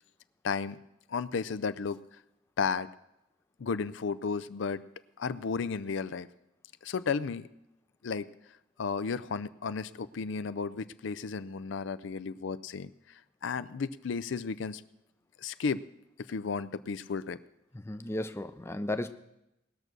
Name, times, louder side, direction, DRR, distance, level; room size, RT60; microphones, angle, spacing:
voice 1, 0.4-0.8 1.1-2.0 2.6-2.9 3.6-4.8 5.2-6.3 6.8-7.5 8.0-8.3 8.8-12.9 13.4-14.8 15.4-15.8 16.3-17.4, left 5 dB, 70° left, 14 dB, 0.5 m, -33 dB
voice 2, 17.8-19.1, left 1 dB, 15° left, 9 dB, 0.5 m, -34 dB
19.0 x 6.7 x 6.1 m, 0.88 s
head